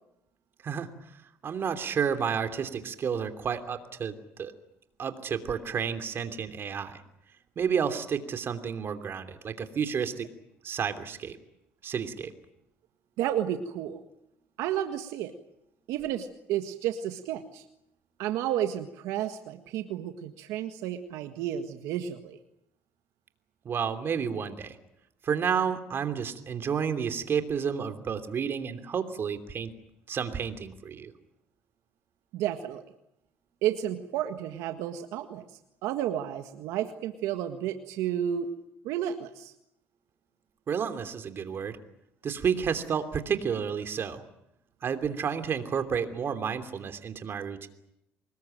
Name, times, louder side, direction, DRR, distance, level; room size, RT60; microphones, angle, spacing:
voice 1, 1.4-4.5 5.0-7.0 7.6-10.3 10.6-11.4 11.8-12.3 23.6-24.8 25.2-29.7 30.1-31.1 40.7-41.8 42.2-44.2 44.8-47.7, right 7 dB, 45° right, 9 dB, 3.0 m, -31 dB
voice 2, 13.2-14.0 14.6-15.3 15.9-17.6 18.2-22.4 32.3-32.8 33.6-35.4 35.8-38.5 38.8-39.5, right 11 dB, 85° right, 7 dB, 1.7 m, -31 dB
25.0 x 21.0 x 9.1 m, 0.83 s
cardioid pair, 95°, 5 cm